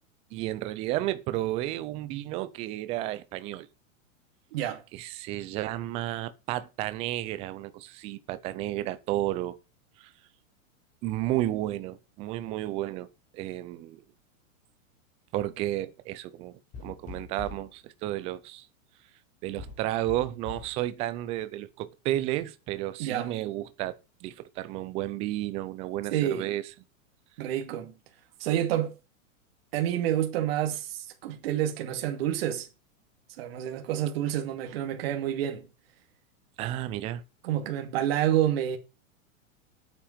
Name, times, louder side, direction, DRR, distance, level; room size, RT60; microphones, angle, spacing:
voice 1, 0.3-3.7 4.9-9.6 10.0-10.1 11.0-13.1 13.3-14.0 15.3-18.7 19.4-26.7 36.6-37.2, right 14 dB, 15° right, 0.5 m, -32 dB
voice 2, 4.5-4.8 23.0-23.3 26.1-26.5 27.4-27.9 28.4-28.9 29.7-32.7 33.4-35.6 37.4-38.8, right 11 dB, 45° right, 2.5 m, -28 dB
sound 1, 16.7-17.7 19.6-20.8, left 4 dB, 20° left, 3.7 m, -43 dB
9.0 x 7.4 x 9.0 m
supercardioid pair, 165°, 41 cm